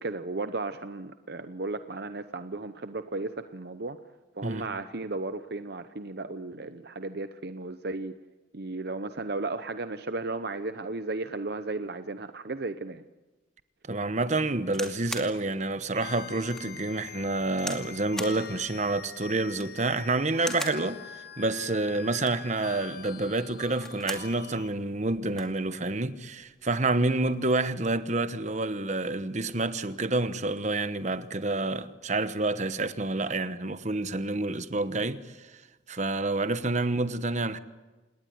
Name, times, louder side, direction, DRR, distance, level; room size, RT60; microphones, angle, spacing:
voice 1, 0.0-4.0 4.4-8.1 8.5-13.0, right 3 dB, 55° right, 0.8 m, -35 dB
voice 2, 13.9-21.0 21.4-35.2 35.9-37.6, right 2 dB, 40° right, 1.1 m, -28 dB
sound 1, 14.6-15.3 15.9-16.0 16.5-16.7 17.6-17.9 18.2-18.4 19.4-19.8 20.4-20.8 22.1-22.5 23.6-24.3 24.7-24.8 25.0-25.5 26.4-26.7, left 1 dB, 5° left, 2.4 m, -38 dB
sound 2, 15.9-24.7, left 7 dB, 50° left, 1.5 m, -44 dB
28.5 x 19.0 x 9.4 m
head